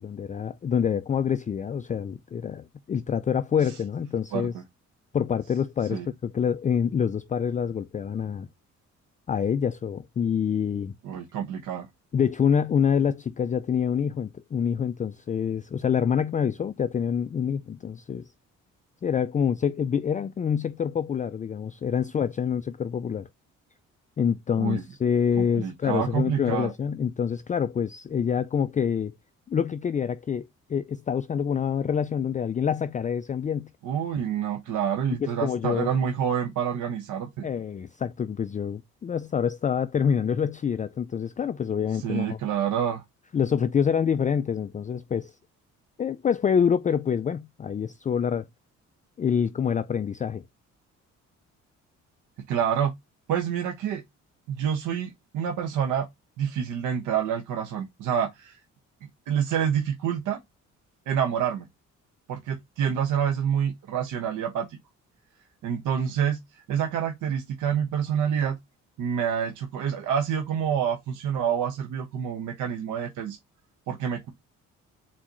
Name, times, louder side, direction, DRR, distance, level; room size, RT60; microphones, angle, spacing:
voice 1, 0.0-4.5 5.1-8.5 9.3-10.9 12.1-18.3 19.0-23.3 24.2-29.1 29.5-33.7 35.1-35.9 37.4-42.4 43.3-45.3 46.0-48.5 49.2-50.4, left 7 dB, 25° left, 0.4 m, -26 dB
voice 2, 11.0-11.9 24.6-24.8 25.4-26.7 33.8-37.5 41.9-43.0 52.5-52.9 53.3-54.0 54.5-56.1 56.4-58.6 59.3-60.4 61.1-61.7 62.3-64.8 65.6-66.4 66.7-68.6 69.0-73.4 73.9-74.3, right 8 dB, 85° right, 1.2 m, -27 dB
4.1 x 4.1 x 3.0 m
cardioid pair, 90°, 30 cm